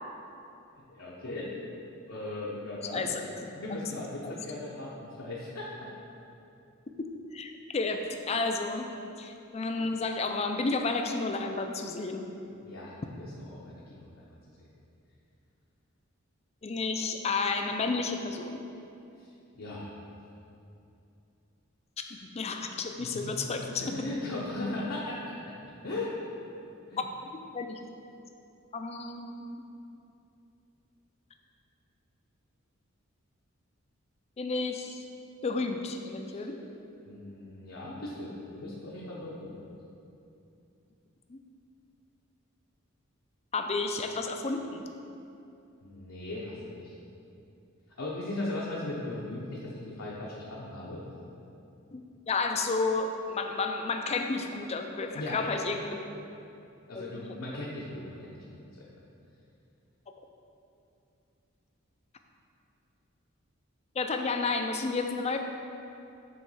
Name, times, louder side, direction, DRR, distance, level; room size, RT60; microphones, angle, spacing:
voice 1, 0.7-1.6 2.1-3.3 3.5-5.7 12.6-14.2 19.2-19.9 23.0-23.4 23.8-25.3 25.8-26.1 26.9-27.0 36.2-36.5 37.1-39.6 45.8-47.0 48.0-51.0 55.1-55.6 56.9-58.4 58.7-58.9, left 2 dB, 75° left, -6 dB, 0.8 m, -38 dB
voice 2, 7.3-8.9 9.2-12.3 16.6-18.6 22.2-24.0 27.5-27.8 28.7-29.6 34.4-35.0 35.4-36.6 41.3-41.4 43.5-44.8 51.9-56.0 56.9-57.0 64.0-65.4, left 3 dB, 30° left, 5 dB, 0.4 m, -31 dB
7.7 x 3.2 x 5.5 m, 2.7 s
head